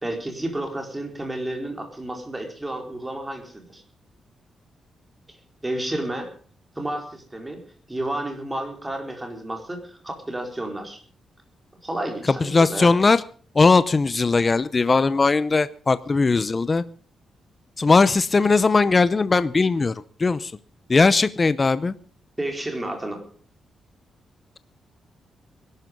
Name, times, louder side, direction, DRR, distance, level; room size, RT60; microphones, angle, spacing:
voice 1, 0.0-3.8 5.6-6.3 6.8-7.6 7.9-11.0 11.8-12.9 22.4-23.2, right 1 dB, 10° right, 4 dB, 4.4 m, -31 dB
voice 2, 12.3-13.2 13.5-16.8 17.8-19.9 20.2-20.5 20.9-21.9, left 4 dB, 25° left, 15 dB, 0.7 m, -19 dB
21.0 x 12.5 x 5.3 m, 0.43 s
wide cardioid pair, 155°, 0 cm